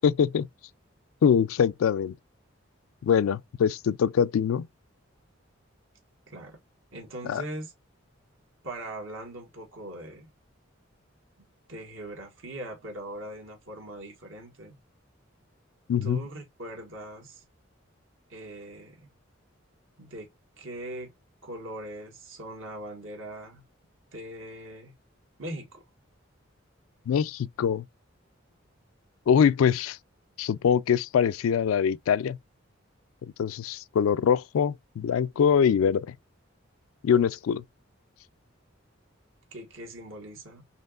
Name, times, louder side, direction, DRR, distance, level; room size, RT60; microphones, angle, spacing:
voice 1, 0.0-0.5 1.2-2.1 3.0-4.7 7.3-7.4 15.9-16.2 27.1-27.8 29.3-30.0 30.4-32.4 33.2-36.1 37.0-37.6, left 7 dB, 90° left, 0.3 m, -23 dB
voice 2, 6.3-6.6 6.9-7.7 8.6-10.3 11.7-14.8 16.0-17.4 18.3-19.1 20.0-20.3 20.6-21.1 21.4-23.6 24.1-24.9 25.4-25.8 39.5-40.6, right 1 dB, 80° right, 1.5 m, -40 dB
4.3 x 2.9 x 2.4 m
head